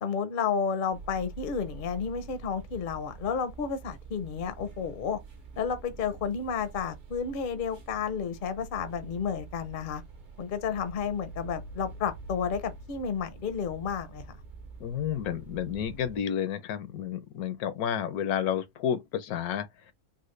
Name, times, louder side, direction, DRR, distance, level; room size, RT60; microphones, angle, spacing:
voice 1, 0.0-5.2 5.6-10.0 10.4-14.3, left 6 dB, 55° left, 0.6 m, -31 dB
sound 1, 0.9-16.2, right 3 dB, 40° right, 0.8 m, -46 dB
voice 2, 14.8-19.9, left 9 dB, 80° left, 1.1 m, -31 dB
3.9 x 2.2 x 3.2 m
omnidirectional pair, 1.6 m